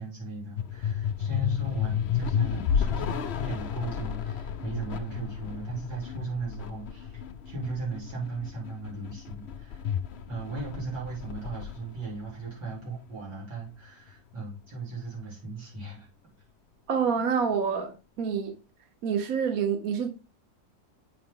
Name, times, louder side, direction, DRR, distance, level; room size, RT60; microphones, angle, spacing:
voice 1, 0.0-9.8 10.3-16.1, right 3 dB, 85° right, 4.9 m, -37 dB
sound 1, 0.6-13.1, left 8 dB, 65° left, 0.6 m, -32 dB
voice 2, 16.9-18.6 19.0-20.1, right 6 dB, 55° right, 1.5 m, -27 dB
8.5 x 5.4 x 3.8 m
omnidirectional pair, 2.0 m